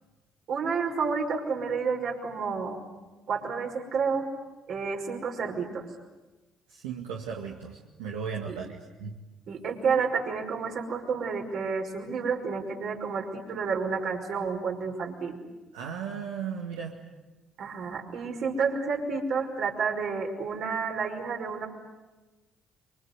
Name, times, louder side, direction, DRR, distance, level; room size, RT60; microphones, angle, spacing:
voice 1, 0.5-2.8 3.3-4.3 4.7-5.9 8.5-8.6 9.5-15.4 17.6-21.7, right 5 dB, 60° right, 2 dB, 5.5 m, -30 dB
voice 2, 6.7-9.2 15.7-17.0, right 6 dB, 80° right, -1 dB, 2.1 m, -36 dB
28.0 x 25.0 x 8.3 m, 1.1 s
hypercardioid pair, 50°, 0 cm